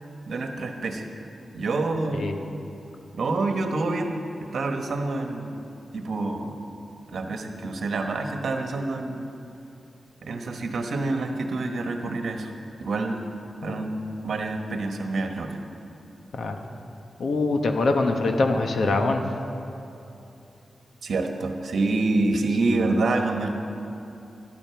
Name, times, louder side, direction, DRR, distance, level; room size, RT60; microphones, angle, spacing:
voice 1, 0.3-1.1 1.5-2.3 3.1-5.6 5.9-6.6 7.1-9.3 10.2-12.5 12.8-13.2 13.6-15.6 21.0-23.5, right 3 dB, 65° right, 4 dB, 1.2 m, -27 dB
voice 2, 17.2-19.2, left 3 dB, 65° left, 5 dB, 1.1 m, -23 dB
12.5 x 12.0 x 5.9 m, 2.8 s
wide cardioid pair, 160°, 0 cm